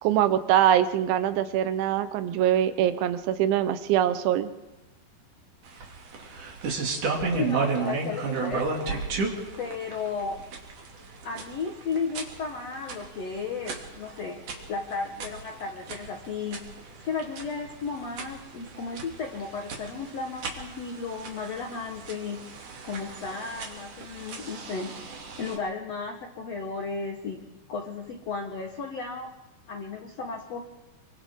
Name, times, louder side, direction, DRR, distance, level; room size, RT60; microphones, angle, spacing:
voice 1, 0.0-4.5, right 11 dB, 90° right, 11 dB, 3.3 m, -23 dB
sound 1, 5.7-25.6, right 4 dB, 50° right, 3.8 m, -34 dB
voice 2, 7.4-9.0 9.6-10.4 11.2-14.4 14.7-16.6 17.0-22.4 22.8-24.9 25.4-27.4 27.7-29.3 29.7-30.6, left 4 dB, 75° left, 3 dB, 1.5 m, -34 dB
29.5 x 24.5 x 3.8 m, 1.0 s
omnidirectional pair, 5.2 m